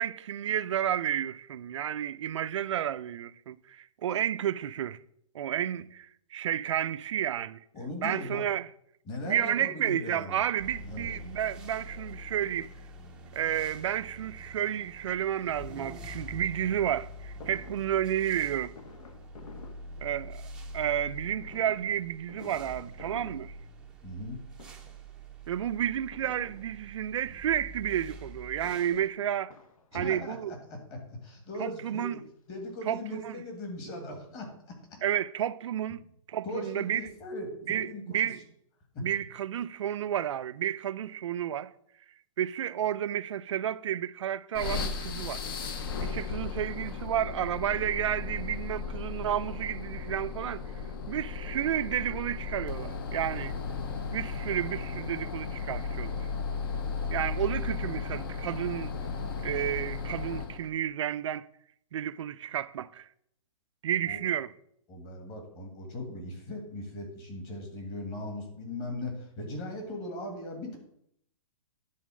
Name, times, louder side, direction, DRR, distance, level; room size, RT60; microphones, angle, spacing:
voice 1, 0.0-5.0 5.3-7.6 8.0-8.7 9.3-12.7 13.3-18.7 20.0-20.4 20.7-23.5 25.5-29.5 29.9-30.5 31.6-32.2 32.9-33.4 35.0-36.0 36.3-37.1 37.7-37.9 38.1-38.4 39.0-41.7 42.4-45.4 46.0-50.6 51.1-53.5 54.1-56.2 57.1-58.9 59.4-61.5 61.9-63.1 63.8-64.5, right 10 dB, 55° right, 0.4 m, -31 dB
voice 2, 7.7-8.4 9.1-10.4 10.9-11.1 24.0-24.4 29.9-32.1 32.5-34.5 36.4-38.3 38.9-39.0 64.1-64.2 64.9-70.8, left 1 dB, 25° left, 1.7 m, -39 dB
sound 1, 10.6-29.1, equal, 5° right, 0.6 m, -45 dB
Fireworks, 17.4-20.6 21.4-24.3 24.5-25.2 26.1-27.2 28.4-31.0 31.8-31.9 32.2-32.3 32.6-33.9 34.2-34.3 34.4-34.5, left 5 dB, 75° left, 1.1 m, -52 dB
sound 2, 44.5-60.7, left 5 dB, 40° left, 0.8 m, -35 dB
10.5 x 4.0 x 6.2 m
hypercardioid pair, 165°, 18 cm